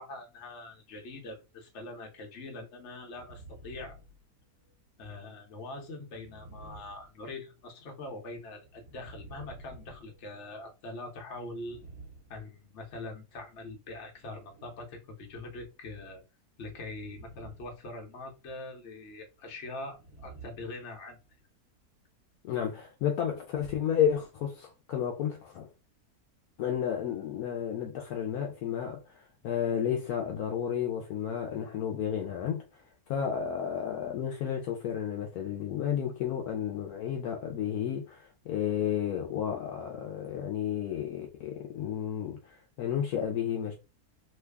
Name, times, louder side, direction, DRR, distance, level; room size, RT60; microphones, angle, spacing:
voice 1, 0.0-4.0 5.0-11.8 12.3-16.2 16.6-21.2, left 2 dB, 50° left, 1.1 m, -43 dB
sound 1, 3.1-4.7 6.2-7.7 8.6-10.7 11.5-13.0 14.2-14.9 16.9-17.8 18.1-18.4 19.8-21.4, right 2 dB, 40° right, 1.6 m, -51 dB
voice 2, 22.4-25.7 26.6-43.8, left 9 dB, 75° left, 1.1 m, -32 dB
3.1 x 2.3 x 3.3 m
omnidirectional pair, 1.7 m